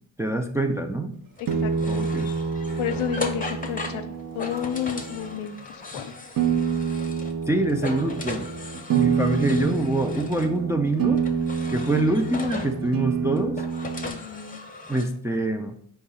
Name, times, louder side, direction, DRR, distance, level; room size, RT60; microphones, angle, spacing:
voice 1, 0.2-1.1 1.9-2.3 7.5-8.5 8.9-11.2 11.7-13.6 14.9-15.7, right 2 dB, 5° right, 5 dB, 0.3 m, -25 dB
sound 1, 1.4-7.4 7.7-10.5 11.2-12.8 13.4-15.0, left 2 dB, 15° left, 0.7 m, -37 dB
sound 2, 1.5-5.4 6.4-14.1, right 6 dB, 45° right, 0.7 m, -27 dB
voice 2, 1.6-2.1 2.8-4.1 4.3-6.1 14.0-14.6, left 10 dB, 75° left, 9 dB, 0.6 m, -31 dB
4.7 x 2.4 x 4.1 m, 0.65 s
supercardioid pair, 45°, 48 cm